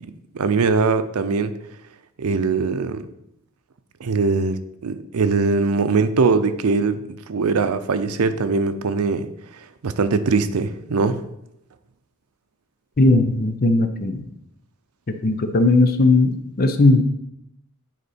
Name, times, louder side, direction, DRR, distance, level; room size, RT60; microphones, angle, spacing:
voice 1, 0.0-1.5 2.2-3.1 4.0-9.3 9.8-11.2, right 4 dB, 90° right, 12 dB, 0.5 m, -21 dB
voice 2, 13.0-14.3 15.1-17.0, left 2 dB, 45° left, 8 dB, 0.6 m, -17 dB
8.2 x 4.3 x 4.2 m, 0.81 s
head